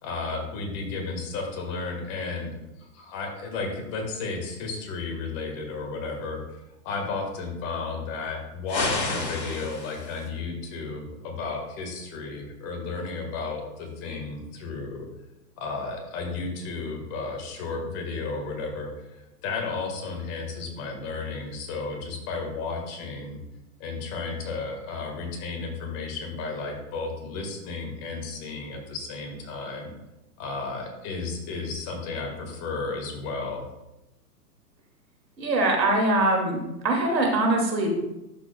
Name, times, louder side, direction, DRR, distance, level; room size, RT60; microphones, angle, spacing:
voice 1, 0.0-6.4 6.8-15.0 15.6-23.4 23.8-29.9 30.4-33.6, left 4 dB, 30° left, 3 dB, 1.6 m, -33 dB
sound 1, 8.7-10.3, left 3 dB, 90° left, 1.6 m, -30 dB
voice 2, 35.4-36.6 36.8-37.9, right 2 dB, 85° right, 1 dB, 2.3 m, -22 dB
12.0 x 6.2 x 2.2 m, 0.96 s
hypercardioid pair, 125°, 49 cm